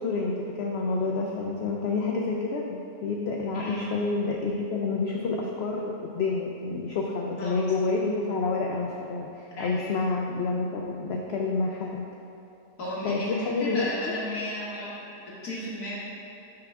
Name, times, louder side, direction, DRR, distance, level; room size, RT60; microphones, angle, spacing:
voice 1, 0.0-12.1 13.0-14.1, left 3 dB, 65° left, 0 dB, 0.6 m, -29 dB
voice 2, 9.6-9.9 12.8-14.9 15.4-16.0, left 1 dB, 90° left, -7 dB, 2.0 m, -33 dB
6.8 x 3.4 x 6.0 m, 2.7 s
omnidirectional pair, 1.6 m